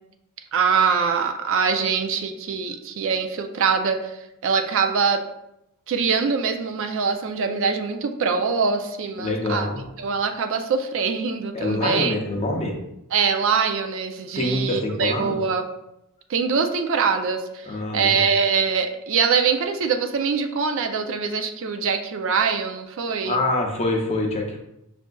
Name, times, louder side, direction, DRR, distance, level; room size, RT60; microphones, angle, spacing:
voice 1, 0.5-5.2 5.9-9.7 10.0-12.2 13.1-15.6 16.3-23.4, right 5 dB, 65° right, 6 dB, 0.4 m, -23 dB
voice 2, 9.2-9.8 11.5-12.8 14.4-15.4 17.6-18.3 23.2-24.6, left 2 dB, 30° left, 1 dB, 0.6 m, -25 dB
6.1 x 2.5 x 2.2 m, 0.87 s
head